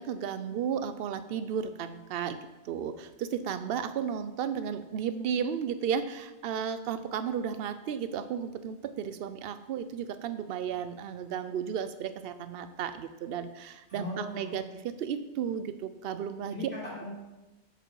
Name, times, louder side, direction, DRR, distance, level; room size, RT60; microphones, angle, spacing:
voice 1, 0.0-2.4 2.6-14.6 15.0-16.6, right 8 dB, 65° right, 12 dB, 0.7 m, -34 dB
voice 2, 13.9-14.6 16.5-17.1, left 1 dB, 10° left, -7 dB, 2.9 m, -38 dB
7.7 x 5.0 x 4.6 m, 1.0 s
omnidirectional pair, 1.2 m